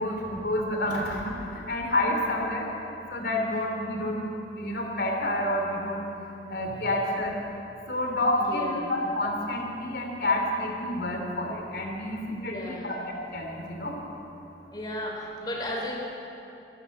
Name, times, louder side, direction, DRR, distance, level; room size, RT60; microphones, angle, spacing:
voice 1, 0.0-4.2 4.6-6.0 6.5-7.3 7.9-14.0, left 1 dB, 65° left, 1 dB, 2.8 m, -29 dB
voice 2, 8.4-8.9 12.4-13.0 14.7-16.0, equal, 25° left, -2 dB, 3.2 m, -35 dB
14.5 x 13.0 x 7.7 m, 2.9 s
head